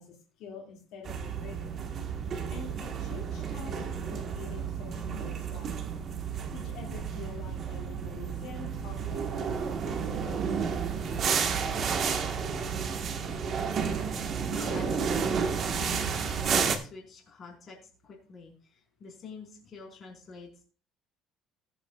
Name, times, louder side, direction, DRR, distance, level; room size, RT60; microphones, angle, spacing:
voice 1, 0.0-1.7 2.5-5.8 6.5-10.6, left 5 dB, 70° left, 0 dB, 2.3 m, -46 dB
sound 1, 1.0-16.8, right 6 dB, 35° right, 1.4 m, -31 dB
voice 2, 14.5-17.8 18.0-20.6, left 4 dB, 30° left, 0 dB, 4.4 m, -46 dB
20.0 x 8.2 x 2.4 m, 0.39 s
cardioid pair, 160°, 0 cm